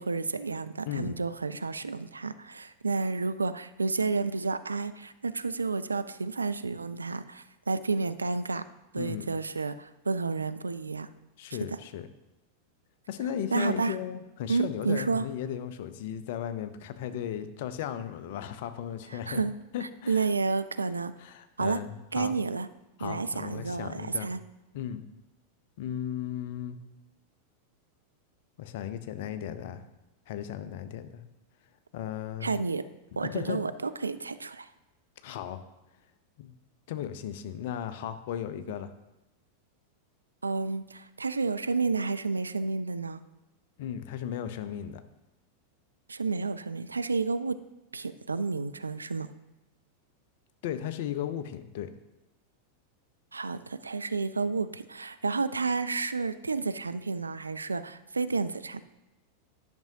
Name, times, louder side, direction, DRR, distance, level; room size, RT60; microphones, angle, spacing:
voice 1, 0.0-8.6 8.9-11.1 11.7-11.8 13.5-14.0 14.5-15.2 19.1-19.5 19.8-21.1 21.6-21.8 22.1-22.7 23.0-24.4 32.4-32.8 33.2-34.7 40.4-43.2 46.1-47.6 47.9-49.3 53.3-58.8, right 4 dB, 75° right, 13 dB, 0.3 m, -31 dB
voice 2, 0.9-1.2 9.0-9.3 11.4-12.1 13.1-19.4 19.7-20.3 21.2-22.4 23.0-24.3 24.7-25.0 25.8-26.8 28.6-29.8 30.3-31.2 31.9-32.6 33.2-33.6 35.2-35.6 36.4-36.5 36.9-38.9 43.8-45.0 50.6-51.9, left 10 dB, 50° left, 11 dB, 0.6 m, -36 dB
10.5 x 6.1 x 2.7 m, 1.0 s
figure-of-eight pair, 90°, 0 cm